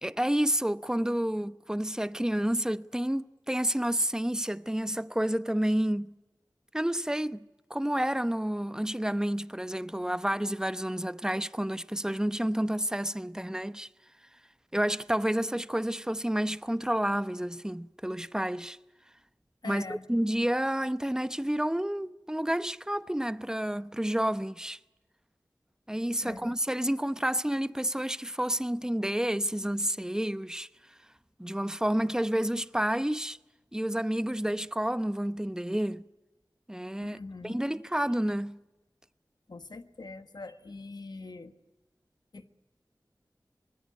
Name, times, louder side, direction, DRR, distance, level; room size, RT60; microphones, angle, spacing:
voice 1, 0.0-6.1 6.7-7.4 7.7-13.9 14.7-18.8 19.6-24.8 25.9-30.7 31.4-33.4 33.7-36.0 36.7-38.6, right 1 dB, 10° right, 0.8 m, -30 dB
voice 2, 19.6-20.0 26.2-26.6 37.0-37.6 39.5-41.5 42.3-42.5, left 3 dB, 70° left, 1.5 m, -43 dB
24.5 x 19.5 x 9.4 m
wide cardioid pair, 40°, 7 cm